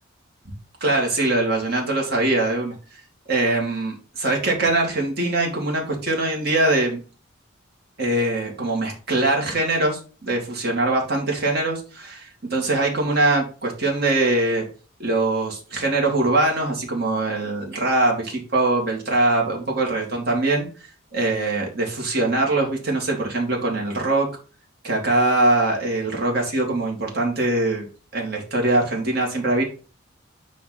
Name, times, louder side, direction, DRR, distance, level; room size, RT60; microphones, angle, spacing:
voice 1, 0.8-3.0 3.3-7.0 8.0-14.7 15.0-20.7 21.1-24.3 24.8-27.9 28.1-29.6, right 2 dB, 50° right, -1 dB, 2.2 m, -22 dB
9.3 x 3.1 x 4.1 m, 0.36 s
head